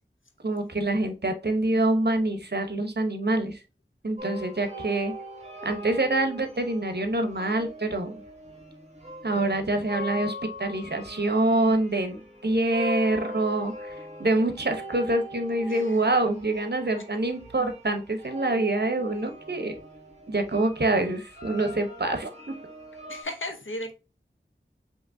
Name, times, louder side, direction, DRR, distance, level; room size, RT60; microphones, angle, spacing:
voice 1, 0.4-3.6 4.0-5.1 5.6-8.1 9.2-19.8 20.3-22.5, right 2 dB, 55° right, 6 dB, 0.8 m, -26 dB
sound 1, 4.2-23.2, left 1 dB, 35° right, 1.3 m, -41 dB
voice 2, 15.7-16.0 23.1-23.9, left 1 dB, 85° left, 5 dB, 0.9 m, -35 dB
5.1 x 2.9 x 2.6 m, 0.30 s
wide cardioid pair, 40°, 20 cm